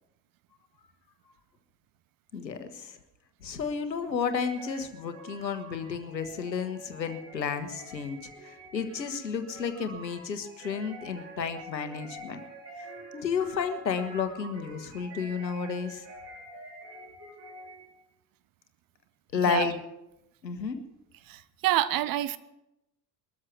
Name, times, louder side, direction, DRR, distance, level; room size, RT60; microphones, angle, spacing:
voice 1, 2.3-3.0 3.4-12.4 12.8-12.9 13.1-16.0 19.3-19.8 20.4-20.8, left 6 dB, 85° left, 8 dB, 1.5 m, -32 dB
sound 1, 4.4-18.0, right 1 dB, 25° right, 3.9 m, -47 dB
voice 2, 21.3-22.4, right 14 dB, 45° right, 15 dB, 1.0 m, -27 dB
21.5 x 13.5 x 4.7 m, 0.88 s
figure-of-eight pair, 65°, 50 cm